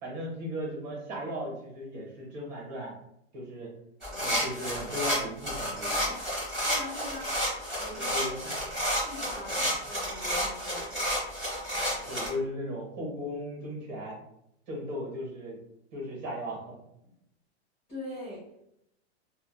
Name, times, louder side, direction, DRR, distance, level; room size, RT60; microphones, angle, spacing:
voice 1, 0.0-2.9 3.3-3.7 4.1-6.2 7.9-8.4 9.5-9.7 11.7-11.8 12.1-14.2 14.7-15.6 15.9-16.8, equal, 40° right, -2 dB, 0.9 m, -36 dB
sound 1, 4.0-12.3, equal, ahead, 1.1 m, -31 dB
voice 2, 6.6-7.4 7.8-8.3 9.0-10.9 17.9-18.7, left 1 dB, 15° left, -9 dB, 0.6 m, -42 dB
3.2 x 2.2 x 2.2 m, 0.78 s
supercardioid pair, 180°, 35 cm